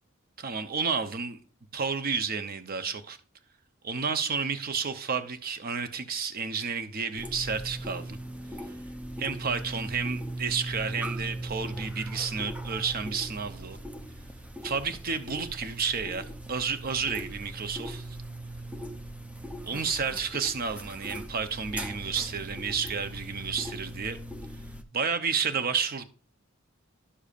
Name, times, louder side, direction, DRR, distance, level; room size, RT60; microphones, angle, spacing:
voice 1, 0.4-1.4 1.7-3.2 3.8-8.2 9.2-13.8 14.6-18.2 19.6-24.2 24.9-26.0, right 5 dB, 45° right, 0.7 m, -31 dB
sound 1, 7.2-24.8, right 1 dB, 5° right, 0.5 m, -39 dB
11.5 x 6.7 x 2.5 m
head